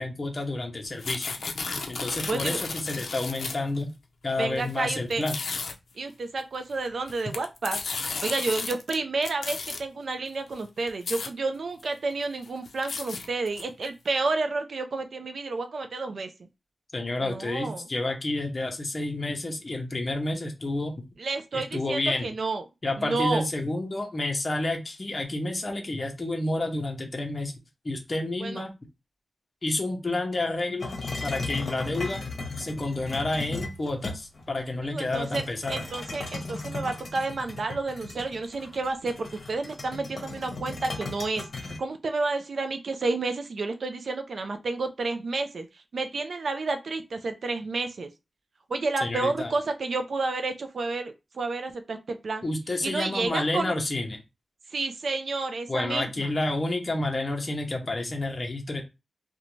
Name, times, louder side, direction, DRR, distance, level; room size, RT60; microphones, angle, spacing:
voice 1, 0.0-1.4 1.9-3.9 4.2-5.4 16.9-21.0 21.5-22.3 22.8-27.5 27.8-28.7 29.6-30.9 31.2-32.2 32.6-35.8 49.0-49.5 52.4-54.2 55.7-58.8, left 2 dB, 35° left, 2 dB, 0.7 m, -30 dB
sound 1, 0.8-3.8 4.5-4.7 5.1-5.7 6.9-8.9 9.2-9.8 10.5-10.6 10.9-11.3 11.8-11.9 12.2-13.9, left 4 dB, 80° left, 0.4 m, -33 dB
voice 2, 2.2-2.6 4.4-5.2 6.0-7.8 8.2-16.5 17.2-17.9 21.2-22.6 23.0-23.4 28.4-28.6 34.8-35.4 35.7-48.1 48.7-52.4 52.8-53.8 54.7-56.3, right 3 dB, 65° right, 7 dB, 0.3 m, -30 dB
sound 2, 30.8-34.5 35.1-41.8, left 3 dB, 60° left, 0.8 m, -36 dB
2.5 x 2.1 x 3.0 m, 0.25 s
wide cardioid pair, 125°, 0 cm